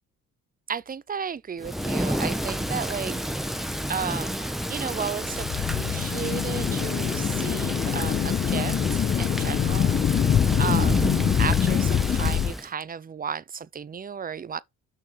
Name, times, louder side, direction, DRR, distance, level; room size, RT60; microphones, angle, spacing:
voice 1, 0.7-10.3 10.6-11.1 11.4-14.6, right 7 dB, 30° right, 0.7 m, -34 dB
Thunder / Rain, 1.6-12.7, equal, ahead, 1.2 m, -30 dB
sound 1, 5.2-12.5, left 9 dB, 35° left, 0.4 m, -24 dB
6.4 x 6.0 x 4.7 m
cardioid pair, 90°, 30 cm